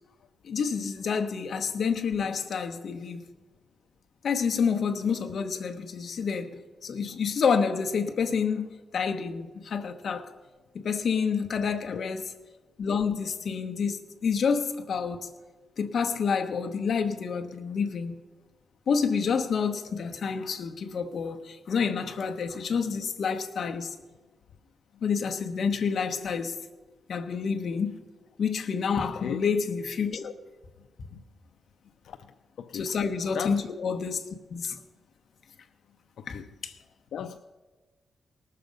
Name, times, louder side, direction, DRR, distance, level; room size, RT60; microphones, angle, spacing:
voice 1, 0.4-3.2 4.2-10.3 10.7-12.3 12.8-15.3 15.8-18.2 18.9-23.9 25.0-26.6 27.1-28.0 28.4-30.3 32.7-34.8 36.3-36.7, left 6 dB, 60° left, 1.0 m, -28 dB
voice 2, 32.6-32.9 33.3-33.6 36.2-36.4 37.1-37.4, left 8 dB, 80° left, 0.5 m, -36 dB
19.0 x 6.8 x 5.2 m
wide cardioid pair, 135°, 0 cm